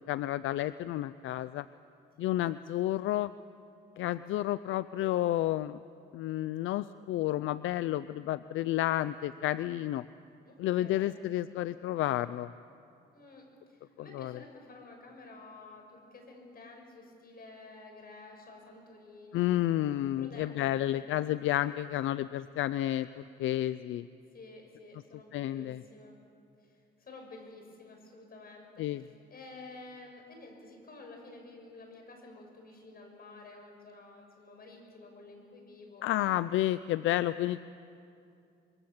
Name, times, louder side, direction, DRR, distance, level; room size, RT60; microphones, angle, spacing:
voice 1, 0.0-1.7 2.2-3.3 4.0-5.8 6.1-10.0 10.6-12.5 14.0-14.4 19.3-24.1 25.3-25.8 28.8-29.0 36.0-37.6, left 14 dB, 80° left, 15 dB, 0.5 m, -31 dB
voice 2, 10.4-11.2 13.1-19.6 20.2-20.9 24.3-26.1 27.0-28.9 29.3-36.0, left 2 dB, 50° left, 2 dB, 6.8 m, -51 dB
26.5 x 23.0 x 7.3 m, 2.6 s
cardioid pair, 90°, 20 cm